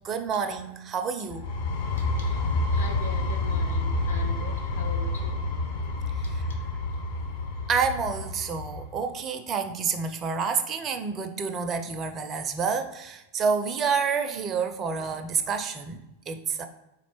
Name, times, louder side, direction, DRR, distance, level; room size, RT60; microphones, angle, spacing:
voice 1, 0.0-1.4 6.2-6.4 7.7-16.7, right 5 dB, 25° right, 7 dB, 0.4 m, -29 dB
sound 1, 1.3-8.9, left 2 dB, 50° left, 0.6 m, -28 dB
voice 2, 2.0-2.4 2.7-5.4 6.2-6.6, left 4 dB, 70° left, 2 dB, 0.9 m, -42 dB
4.1 x 3.1 x 3.0 m, 0.94 s
figure-of-eight pair, 90°, 0 cm